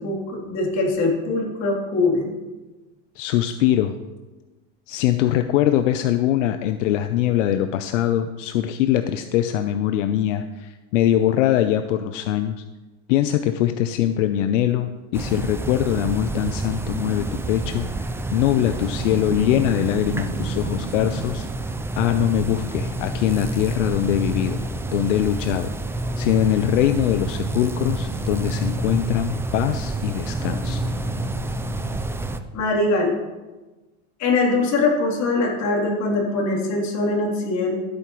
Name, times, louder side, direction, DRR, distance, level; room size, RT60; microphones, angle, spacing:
voice 1, 0.0-2.3 32.5-33.1 34.2-37.8, left 3 dB, 50° left, -1 dB, 3.3 m, -22 dB
voice 2, 3.2-4.0 4.9-12.6 13.1-24.6 24.9-25.7 26.2-30.8, left 11 dB, 85° left, 9 dB, 0.7 m, -22 dB
sound 1, 15.1-32.4, right 2 dB, 5° right, 0.5 m, -28 dB
Boom, 18.6-21.8, right 3 dB, 30° right, 1.6 m, -35 dB
14.5 x 8.8 x 3.1 m, 1.2 s
supercardioid pair, 115°, 36 cm